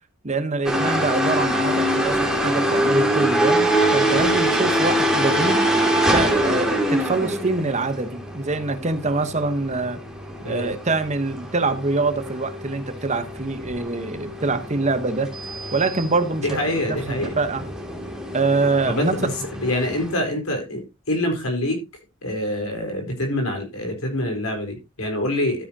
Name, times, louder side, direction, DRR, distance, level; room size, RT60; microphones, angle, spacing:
voice 1, 0.2-5.7 6.1-10.0 10.4-15.3 15.7-17.6 18.3-19.1, right 3 dB, 35° right, 1.1 m, -25 dB
sound 1, 0.6-20.1, right 1 dB, 5° right, 2.6 m, -24 dB
voice 2, 16.4-17.4 18.9-21.8 22.2-25.6, left 1 dB, 85° left, 4.6 m, -25 dB
13.0 x 9.4 x 2.9 m
head